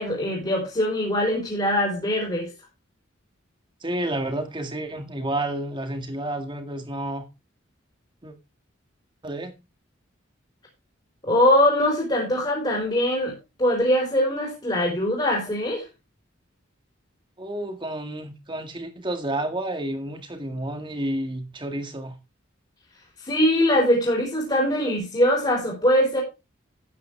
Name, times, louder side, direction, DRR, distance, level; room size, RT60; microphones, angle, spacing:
voice 1, 0.0-2.5 11.2-13.3 13.6-15.8 23.2-26.2, left 1 dB, 25° left, 3.8 m, -22 dB
voice 2, 3.8-7.3 8.2-8.3 9.2-9.5 17.4-22.1, right 1 dB, 25° right, 1.9 m, -30 dB
12.5 x 9.1 x 3.4 m
head